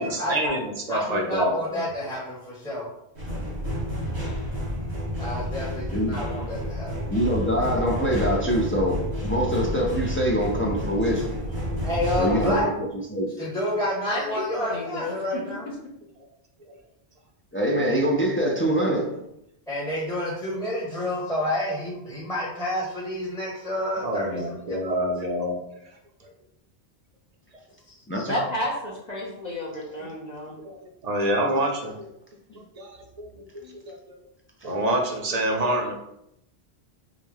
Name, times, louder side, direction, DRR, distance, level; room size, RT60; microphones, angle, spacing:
voice 1, 0.0-1.5 16.7-16.8 24.0-25.6 30.6-30.8 31.0-32.1 32.5-33.3 33.5-34.0 34.6-35.9, right 1 dB, 45° right, 1 dB, 0.7 m, -27 dB
voice 2, 0.9-2.9 5.2-6.9 11.8-12.7 13.4-15.6 19.7-25.0, left 1 dB, 5° left, -5 dB, 0.8 m, -29 dB
sound 1, 3.1-12.6, equal, 85° right, 2.1 m, -30 dB
voice 3, 5.9-6.2 7.1-11.3 12.2-13.4 17.5-19.1 28.1-28.5, equal, 20° left, -1 dB, 0.4 m, -24 dB
voice 4, 14.0-15.1 15.5-15.6 28.3-30.6 33.6-33.7, left 1 dB, 45° left, -4 dB, 0.8 m, -32 dB
4.8 x 2.2 x 3.5 m, 0.81 s
omnidirectional pair, 1.1 m